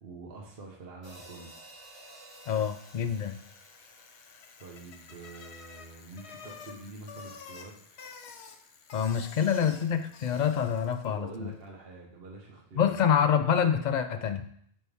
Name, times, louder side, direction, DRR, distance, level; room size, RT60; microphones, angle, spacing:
voice 1, 0.0-1.5 4.6-8.0 11.0-13.0, right 3 dB, 65° right, -1 dB, 1.4 m, -46 dB
sound 1, 1.0-5.4, right 1 dB, 25° right, 1.9 m, -53 dB
Bicycle, 1.8-11.2, left 5 dB, 85° left, 1.0 m, -50 dB
voice 2, 2.5-3.4 8.9-11.5 12.8-14.5, left 8 dB, 50° left, 8 dB, 0.6 m, -26 dB
8.7 x 4.3 x 3.5 m, 0.64 s
omnidirectional pair, 1.1 m